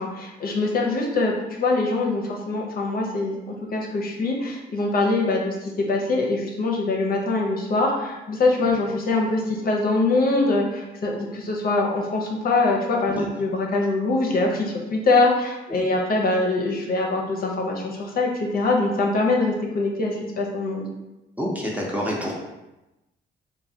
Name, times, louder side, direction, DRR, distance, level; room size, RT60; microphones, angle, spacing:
voice 1, 0.0-20.9, left 2 dB, 50° left, -1 dB, 0.6 m, -23 dB
voice 2, 21.4-22.3, equal, 5° right, -3 dB, 0.6 m, -28 dB
3.1 x 2.2 x 2.7 m, 1.0 s
cardioid pair, 90°, 20 cm